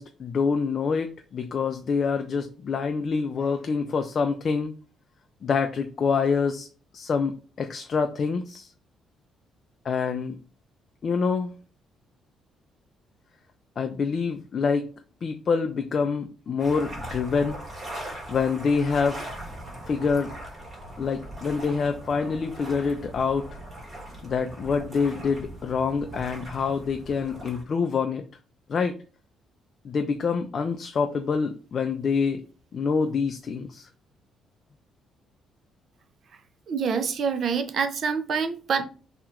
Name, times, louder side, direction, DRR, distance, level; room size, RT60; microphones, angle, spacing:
voice 1, 0.0-4.7 5.4-6.7 6.9-8.7 9.9-10.4 11.0-11.5 13.8-14.9 15.2-17.6 18.3-19.2 19.9-20.3 21.0-23.5 24.2-28.2 28.7-28.9 29.8-32.4 32.7-33.9, left 5 dB, 45° left, 6 dB, 0.3 m, -26 dB
sound 1, 16.6-27.6, right 1 dB, 35° right, 1.6 m, -40 dB
voice 2, 36.7-38.8, right 6 dB, 55° right, 7 dB, 0.5 m, -26 dB
2.8 x 2.4 x 3.4 m, 0.37 s
cardioid pair, 110°, 0 cm